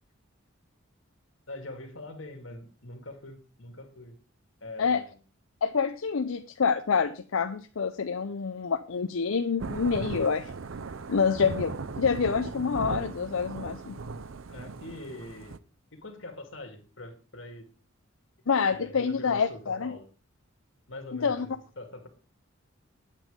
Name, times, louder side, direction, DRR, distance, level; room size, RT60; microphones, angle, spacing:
voice 1, 1.5-4.1 4.6-5.1 14.5-15.6 15.9-17.7 18.7-20.1 20.9-22.1, left 2 dB, 65° left, 5 dB, 2.5 m, -43 dB
voice 2, 5.6-10.5 11.1-14.0 18.5-20.0 21.1-21.5, left 5 dB, 85° left, 8 dB, 0.6 m, -27 dB
Thunder / Rain, 9.6-15.6, right 4 dB, 75° right, 0.6 m, -38 dB
9.1 x 8.6 x 5.1 m, 0.36 s
head